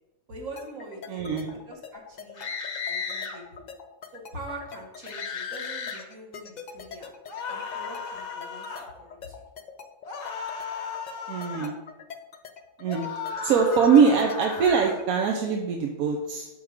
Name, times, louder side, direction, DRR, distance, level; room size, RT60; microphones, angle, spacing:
voice 1, 0.3-2.5 2.9-3.6 4.1-7.1 7.5-9.4, right 2 dB, 60° right, 0 dB, 1.9 m, -43 dB
sound 1, 0.6-15.3, left 7 dB, 75° left, 0.4 m, -43 dB
voice 2, 1.1-1.5 11.3-11.8 12.8-13.1 13.4-16.5, right 6 dB, 80° right, 2 dB, 1.2 m, -22 dB
sound 2, 2.4-3.4 5.0-6.0 7.3-8.9 10.0-11.7 12.9-15.0, left 5 dB, 55° left, 1.1 m, -35 dB
5.8 x 4.7 x 6.4 m, 1.1 s
omnidirectional pair, 1.5 m